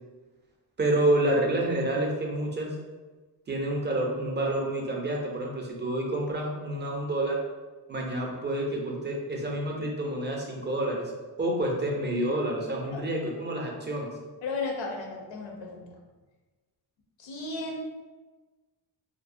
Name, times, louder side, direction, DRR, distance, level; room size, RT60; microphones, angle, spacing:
voice 1, 0.8-2.7 3.5-7.4 7.9-11.0 11.4-14.1, right 1 dB, 25° right, -1 dB, 0.4 m, -28 dB
voice 2, 14.4-15.9 17.2-17.8, left 3 dB, 90° left, 1 dB, 0.6 m, -34 dB
2.6 x 2.0 x 2.5 m, 1.3 s
cardioid pair, 90°, 44 cm